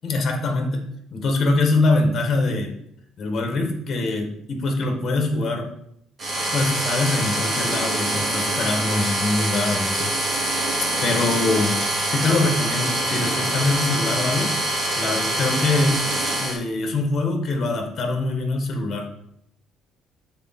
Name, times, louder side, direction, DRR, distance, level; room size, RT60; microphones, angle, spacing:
voice 1, 0.0-2.7 3.2-5.7 6.5-10.1 11.0-11.8 12.1-14.5 15.0-16.0 16.4-19.1, left 2 dB, 45° left, 3 dB, 1.3 m, -23 dB
sound 1, 6.2-16.6, right 1 dB, 40° right, 2.0 m, -24 dB
6.7 x 4.1 x 4.1 m, 0.74 s
cardioid pair, 120°, 0 cm